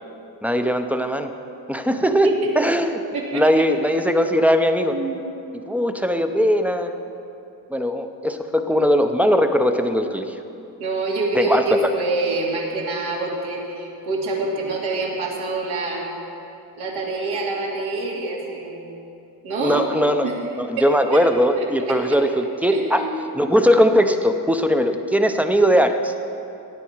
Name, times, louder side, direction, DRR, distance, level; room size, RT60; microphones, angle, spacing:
voice 1, 0.4-1.3 1.7-3.0 3.3-5.0 5.7-7.0 7.7-10.4 11.3-11.9 19.6-20.3 20.6-23.0 23.3-26.1, equal, 5° right, 7 dB, 0.6 m, -19 dB
voice 2, 3.1-3.6 4.9-5.2 10.8-16.2 16.8-18.8 19.4-19.8 20.2-20.3 20.8-20.9 21.1-21.2 21.6-22.2 22.7-23.1, right 3 dB, 80° right, -3 dB, 2.8 m, -26 dB
17.5 x 9.3 x 4.6 m, 2.7 s
cardioid pair, 130°, 38 cm